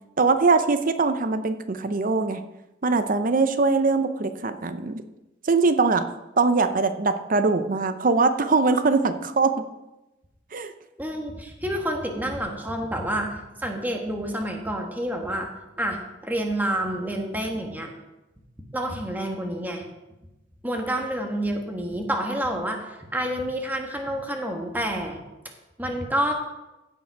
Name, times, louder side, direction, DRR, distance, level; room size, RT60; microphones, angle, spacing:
voice 1, 0.2-2.4 2.8-5.0 5.4-6.0 6.4-9.5 10.5-10.7, right 4 dB, 45° right, 9 dB, 0.7 m, -22 dB
voice 2, 11.0-13.3 13.6-15.5 15.8-17.9 18.7-19.8 20.6-25.2 25.8-26.3, right 1 dB, 10° right, 2 dB, 1.3 m, -28 dB
16.0 x 5.4 x 4.6 m, 0.99 s
head